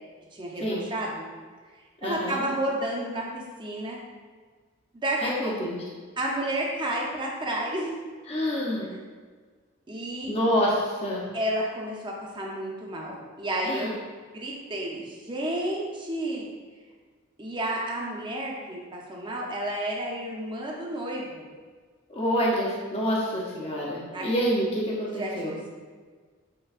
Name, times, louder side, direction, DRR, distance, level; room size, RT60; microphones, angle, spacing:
voice 1, 0.3-1.3 2.0-4.0 5.0-5.5 6.2-8.0 8.9-9.0 9.9-10.3 11.3-14.0 14.3-16.5 17.4-21.4 24.1-24.3 25.1-25.7, right 1 dB, 25° right, -2 dB, 0.6 m, -31 dB
voice 2, 2.0-2.4 5.2-5.8 8.3-8.9 10.3-11.3 13.6-13.9 22.1-25.6, equal, 30° left, -5 dB, 0.6 m, -27 dB
6.6 x 2.2 x 2.4 m, 1.5 s
head